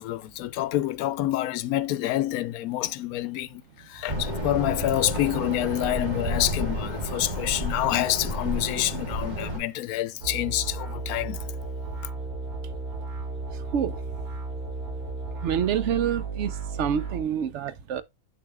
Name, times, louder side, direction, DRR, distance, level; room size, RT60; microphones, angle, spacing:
voice 1, 0.0-11.4, left 14 dB, 80° left, 1.0 m, -27 dB
sound 1, 4.1-9.6, equal, 30° right, 1.6 m, -31 dB
sound 2, 10.2-17.2, right 4 dB, 80° right, 3.1 m, -34 dB
voice 2, 15.4-18.0, right 8 dB, 60° right, 0.9 m, -27 dB
7.5 x 6.5 x 2.2 m
omnidirectional pair, 1.5 m